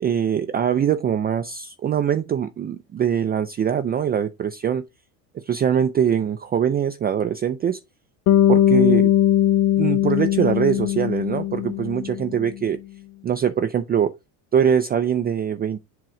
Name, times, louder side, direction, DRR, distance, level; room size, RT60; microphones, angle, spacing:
voice 1, 0.0-4.8 5.3-7.8 8.5-9.1 9.8-12.8 13.2-14.2 14.5-15.8, right 8 dB, 20° right, 0.4 m, -22 dB
Bass guitar, 8.3-12.5, left 12 dB, 60° left, 0.7 m, -19 dB
7.6 x 3.1 x 4.8 m
supercardioid pair, 100°, 46 cm